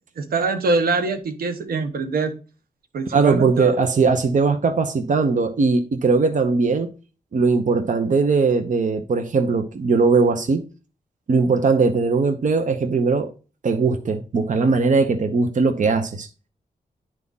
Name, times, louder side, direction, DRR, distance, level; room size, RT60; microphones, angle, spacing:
voice 1, 0.2-2.3 2.9-3.7, right 3 dB, 90° right, 1.2 m, -23 dB
voice 2, 3.1-6.9 7.3-10.6 11.3-13.3 13.6-16.3, right 4 dB, 60° right, 0.9 m, -19 dB
10.5 x 3.7 x 4.0 m
cardioid pair, 85°, 15 cm